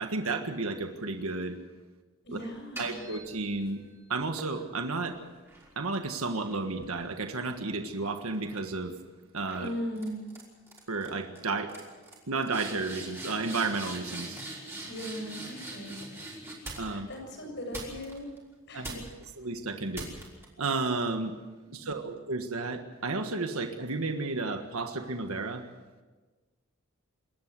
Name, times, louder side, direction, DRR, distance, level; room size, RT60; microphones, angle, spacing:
voice 1, 0.0-1.6 2.3-2.4 2.8-3.8 4.1-5.2 5.7-8.9 9.3-9.7 10.9-11.7 12.3-14.4 16.7-17.1 18.7-19.0 19.4-20.1 20.6-21.3 21.7-25.6, right 3 dB, 80° right, 6 dB, 1.6 m, -32 dB
voice 2, 2.2-3.1 9.6-10.2 14.9-16.0 16.9-18.3 18.7-19.0 21.8-21.9, equal, 55° left, 2 dB, 7.3 m, -38 dB
sound 1, 2.5-3.8 4.4-7.9 8.3-8.7 9.5-9.7 9.9-10.4 10.7-11.1 11.3-11.4 11.7-17.1 17.7-18.4 18.8-19.3 19.9-20.4, right 2 dB, 10° right, 5.4 m, -43 dB
27.5 x 13.5 x 8.1 m, 1.3 s
head